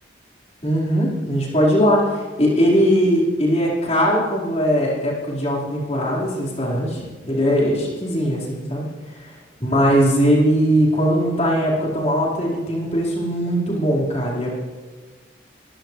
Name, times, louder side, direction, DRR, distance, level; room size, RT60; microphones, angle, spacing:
voice 1, 0.6-8.9 9.1-14.6, equal, 35° left, -5 dB, 4.7 m, -20 dB
24.5 x 16.0 x 3.3 m, 1.4 s
head